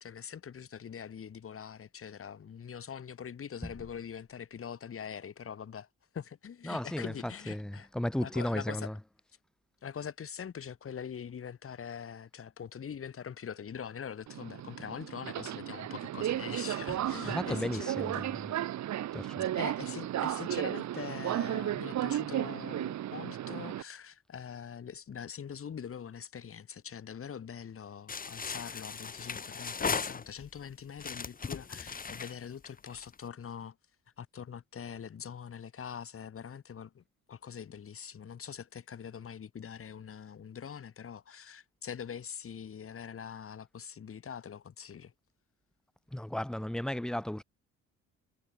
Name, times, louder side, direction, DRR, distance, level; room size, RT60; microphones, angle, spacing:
voice 1, 0.0-5.9 6.1-7.9 8.2-8.9 9.8-18.3 19.5-33.8 34.2-45.1, left 7 dB, 45° left, 2.5 m, -43 dB
voice 2, 6.7-8.9 17.2-18.3 19.1-19.5 46.1-47.4, left 1 dB, ahead, 0.4 m, -34 dB
Subway metro underground, 14.3-23.8, right 12 dB, 65° right, 1.4 m, -34 dB
sound 1, 28.1-30.6 31.0-33.2, left 5 dB, 30° left, 1.3 m, -37 dB
cardioid pair, 90°, 30 cm